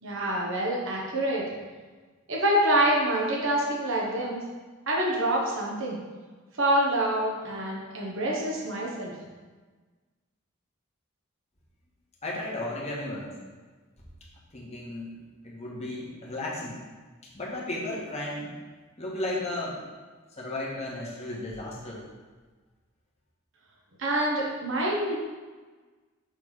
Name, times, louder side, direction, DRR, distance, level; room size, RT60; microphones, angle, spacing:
voice 1, 0.0-1.4 2.3-4.4 4.9-6.0 6.6-9.1 24.0-25.2, right 1 dB, 70° right, -3 dB, 1.2 m, -26 dB
voice 2, 12.2-13.3 14.5-15.1 15.4-16.8 17.2-18.5 19.0-19.8 20.4-22.0, left 1 dB, 35° left, -4 dB, 1.4 m, -34 dB
6.2 x 3.4 x 4.8 m, 1.3 s
head